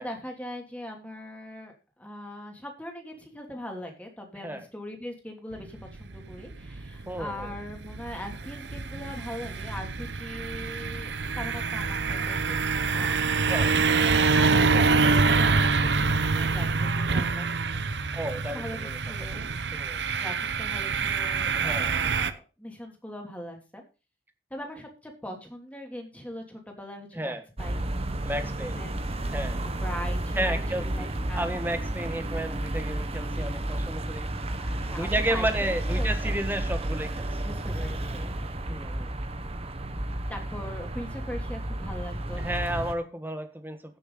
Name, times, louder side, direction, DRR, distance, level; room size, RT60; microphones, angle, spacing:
voice 1, 0.0-13.5 14.0-17.5 18.5-19.5 20.1-23.8 24.5-27.9 28.4-29.1 29.8-31.5 34.6-36.4 37.3-38.3 40.3-42.4, left 1 dB, 10° left, 2 dB, 2.9 m, -41 dB
sound 1, 5.5-22.3, right 4 dB, 75° right, 0.9 m, -26 dB
voice 2, 7.1-7.5 13.4-13.7 18.1-19.0 19.3-19.4 19.7-20.0 21.6-21.9 27.1-27.4 28.2-28.9 29.3-29.6 30.4-31.1 31.3-34.3 34.9-37.2 38.7-39.1 42.4-44.0, right 1 dB, 10° right, 7 dB, 1.5 m, -32 dB
sound 2, 27.6-42.9, right 1 dB, 35° right, 1.2 m, -31 dB
15.5 x 6.7 x 4.0 m, 0.31 s
head